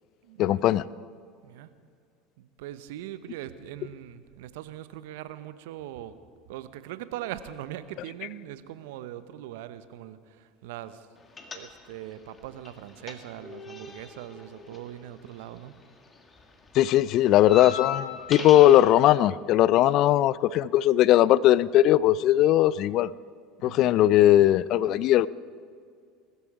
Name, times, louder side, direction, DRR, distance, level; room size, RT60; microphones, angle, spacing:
voice 1, 0.4-0.8 16.7-23.1 23.6-25.3, left 13 dB, 55° left, 0.4 m, -19 dB
voice 2, 2.4-6.2 6.5-11.1 11.5-15.7 23.6-23.9, right 12 dB, 70° right, 0.8 m, -41 dB
sound 1, 11.4-12.1 12.4-15.8 16.0-18.9, left 6 dB, 25° left, 1.9 m, -38 dB
20.5 x 12.5 x 4.7 m
hypercardioid pair, 75°, 0 cm